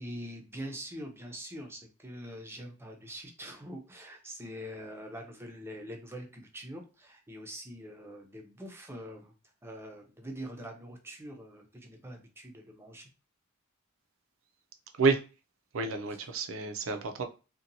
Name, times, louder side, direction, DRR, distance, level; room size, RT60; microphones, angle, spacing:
voice 1, 0.0-9.3 9.6-13.1 16.1-16.2, equal, 10° right, 0.5 m, -44 dB
voice 2, 15.7-17.2, right 4 dB, 70° right, 0.5 m, -29 dB
2.8 x 2.2 x 2.6 m
head